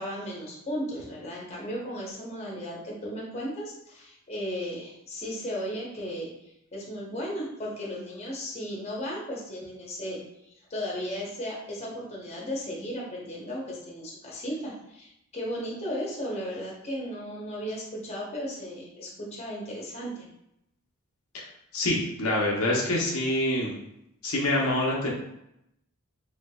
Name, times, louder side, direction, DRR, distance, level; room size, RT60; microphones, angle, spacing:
voice 1, 0.0-10.2 10.5-20.3, equal, 30° left, -4 dB, 0.8 m, -35 dB
voice 2, 21.7-23.7 24.2-25.1, left 1 dB, 85° left, -3 dB, 0.8 m, -26 dB
3.3 x 3.3 x 2.3 m, 0.82 s
head